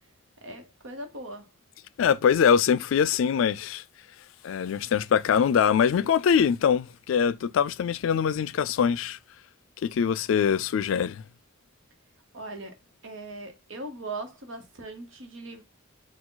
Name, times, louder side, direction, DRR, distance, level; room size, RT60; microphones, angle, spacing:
voice 1, 0.4-1.5 12.3-12.7 13.0-15.6, right 2 dB, 75° right, 1.1 m, -39 dB
voice 2, 2.0-3.8 4.4-9.2 9.8-11.2, left 7 dB, 80° left, 0.3 m, -23 dB
4.7 x 2.4 x 3.8 m
head